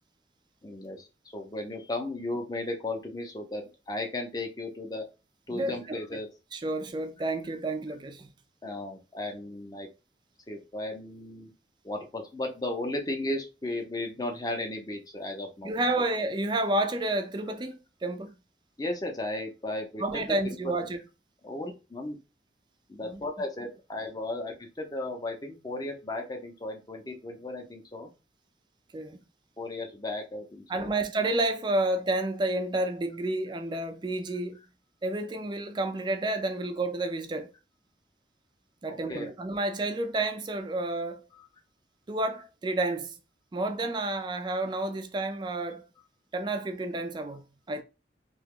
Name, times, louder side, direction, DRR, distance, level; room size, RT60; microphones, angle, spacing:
voice 1, 0.6-1.1 1.3-5.0 5.5-6.3 8.6-9.9 10.5-11.5 11.8-15.7 18.8-20.4 21.4-22.2 22.9-28.1 29.6-30.9 38.9-39.3, left 2 dB, 20° left, 0.6 m, -35 dB
voice 2, 5.5-6.2 6.5-8.3 15.6-18.3 20.0-21.0 23.0-23.3 28.9-29.2 30.7-34.6 35.0-37.5 38.8-41.2 42.1-43.2 43.5-45.8 46.3-47.8, right 2 dB, 25° right, 0.3 m, -30 dB
2.8 x 2.2 x 3.6 m
head